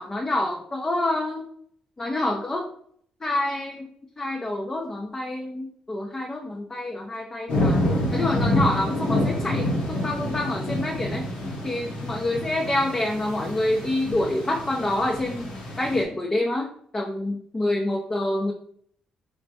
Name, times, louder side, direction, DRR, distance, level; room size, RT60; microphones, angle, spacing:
voice 1, 0.0-1.4 2.0-2.7 3.2-3.9 4.2-7.8 8.1-11.2 11.6-15.5 15.8-18.5, left 1 dB, 25° left, 0 dB, 0.5 m, -27 dB
sound 1, 7.5-16.0, left 1 dB, 75° left, 1.1 m, -27 dB
4.4 x 2.1 x 2.7 m, 0.63 s
supercardioid pair, 60°, 2 cm